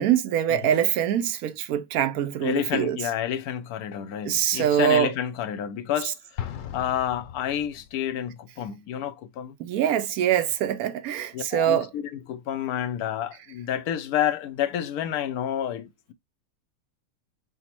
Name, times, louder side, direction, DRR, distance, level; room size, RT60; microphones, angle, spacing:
voice 1, 0.0-3.0 4.3-5.1 9.6-11.9, right 10 dB, 80° right, 1.1 m, -24 dB
voice 2, 2.4-6.4 6.7-9.6 11.3-16.1, left 10 dB, 85° left, 1.2 m, -29 dB
Explosion, 6.4-8.1, left 10 dB, 65° left, 1.0 m, -37 dB
5.1 x 2.1 x 4.2 m
omnidirectional pair, 1.5 m